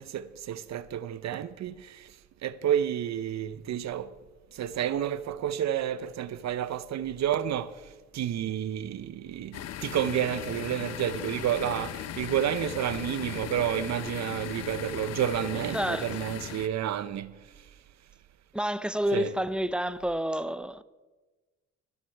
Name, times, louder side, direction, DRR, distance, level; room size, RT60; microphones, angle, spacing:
voice 1, 0.0-2.1 2.4-4.1 4.5-7.7 8.1-17.3 19.1-19.3, right 10 dB, 65° right, 0.7 m, -30 dB
sound 1, 9.5-16.7, left 10 dB, 55° left, 0.7 m, -38 dB
voice 2, 15.7-16.1 18.5-20.8, equal, 5° right, 0.6 m, -29 dB
20.0 x 12.5 x 4.6 m
cardioid pair, 90°, 30 cm